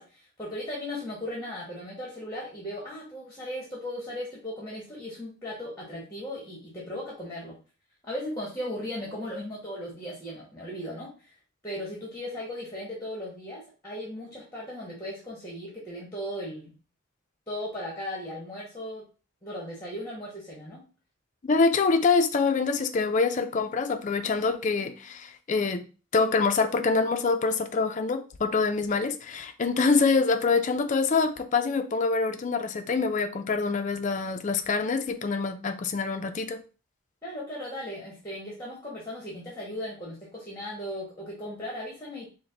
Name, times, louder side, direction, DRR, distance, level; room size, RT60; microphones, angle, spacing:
voice 1, 0.0-7.6 8.0-11.3 11.6-16.7 17.5-19.0 19.4-20.8 37.2-42.3, left 1 dB, 15° left, 1.1 m, -37 dB
voice 2, 21.4-25.8 26.1-36.6, left 4 dB, 40° left, 0.4 m, -25 dB
4.8 x 2.1 x 3.9 m
head